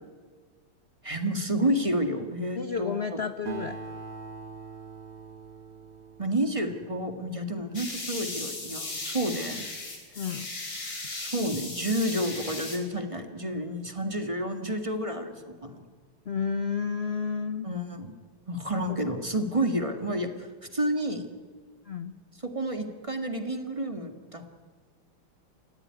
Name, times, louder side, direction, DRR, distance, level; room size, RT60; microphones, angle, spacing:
voice 1, 1.0-3.2 6.2-9.7 11.1-15.8 17.6-18.1 18.5-21.3 22.4-24.5, right 1 dB, 15° right, 6 dB, 1.9 m, -30 dB
voice 2, 2.5-3.8 10.2-10.5 16.3-17.7 21.9-22.1, left 6 dB, 70° left, 10 dB, 0.6 m, -31 dB
Acoustic guitar, 3.5-7.3, right 5 dB, 75° right, 2.9 m, -42 dB
sound 1, 7.7-12.8, left 2 dB, 45° left, 4.1 m, -37 dB
29.0 x 16.0 x 9.7 m, 1.5 s
omnidirectional pair, 2.3 m